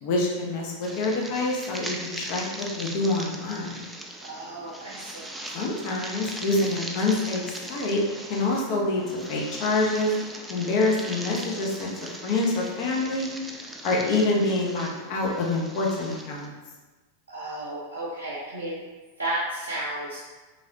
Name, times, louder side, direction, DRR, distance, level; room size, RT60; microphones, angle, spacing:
voice 1, 0.0-3.7 5.5-8.0 8.3-10.1 10.5-11.9 12.2-13.3 13.8-16.5, left 2 dB, 45° left, -2 dB, 0.6 m, -26 dB
sound 1, 0.8-16.5, right 1 dB, 5° right, 0.3 m, -39 dB
voice 2, 4.2-5.3 17.3-18.8 19.2-20.2, right 1 dB, 85° right, -9 dB, 0.6 m, -33 dB
3.1 x 2.8 x 2.5 m, 1.3 s
figure-of-eight pair, 90°, 0 cm